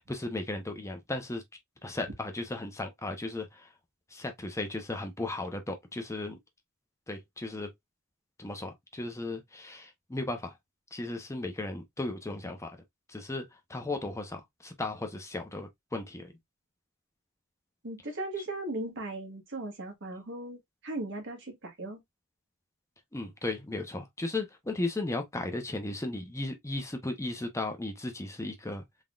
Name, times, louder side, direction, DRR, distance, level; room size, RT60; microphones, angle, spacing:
voice 1, 0.0-1.4 1.8-3.7 4.1-6.4 7.1-7.7 8.4-10.5 10.9-12.8 13.1-16.3 23.1-28.8, left 2 dB, 15° left, 0.7 m, -36 dB
voice 2, 17.8-22.0, right 2 dB, 60° right, 1.4 m, -38 dB
3.8 x 3.6 x 2.4 m
head